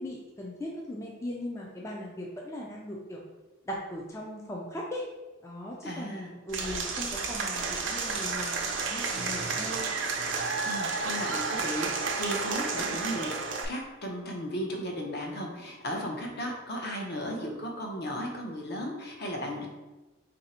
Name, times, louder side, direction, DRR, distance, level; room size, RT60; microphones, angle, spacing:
voice 1, 0.0-3.2 3.7-5.0 5.4-8.5 8.9-9.9, left 1 dB, 15° left, -2 dB, 0.4 m, -38 dB
voice 2, 5.8-6.3 10.7-13.3 13.6-19.7, equal, 55° left, 1 dB, 0.7 m, -35 dB
Applause / Crowd, 6.5-13.6, right 4 dB, 65° right, 0.5 m, -31 dB
3.2 x 2.6 x 4.2 m, 1.1 s
head